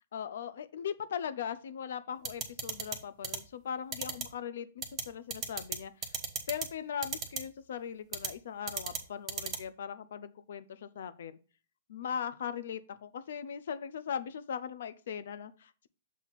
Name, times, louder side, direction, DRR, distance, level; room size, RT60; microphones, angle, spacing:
voice 1, 0.1-6.1 6.5-11.4 11.9-15.9, left 8 dB, 70° left, 13 dB, 0.6 m, -39 dB
sound 1, 2.2-3.0 3.2-3.4 3.9-4.2 4.8-5.0 5.3-5.8 6.0-6.7 7.0-7.4 8.1-8.3 8.7-9.0 9.3-9.6, right 6 dB, 25° right, 1.1 m, -34 dB
7.3 x 2.8 x 5.8 m, 0.37 s
hypercardioid pair, 145°, 0 cm